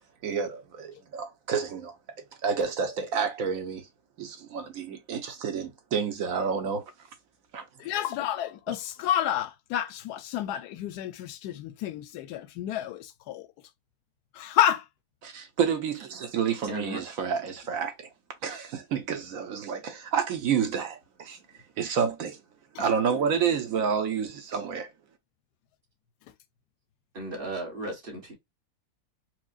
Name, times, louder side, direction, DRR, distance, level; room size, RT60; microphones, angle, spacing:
voice 1, 0.2-1.9 2.4-3.9 4.2-6.8 7.5-7.6 15.2-18.1 18.4-21.4 21.8-22.4 22.8-24.9, right 6 dB, 65° right, 1.0 m, -29 dB
voice 2, 7.8-13.5 14.3-14.9 22.7-22.9 23.4-23.5, left 11 dB, 90° left, 1.1 m, -30 dB
voice 3, 16.7-17.0 27.1-28.3, right 1 dB, 35° right, 1.5 m, -35 dB
4.6 x 2.1 x 2.4 m
omnidirectional pair, 1.6 m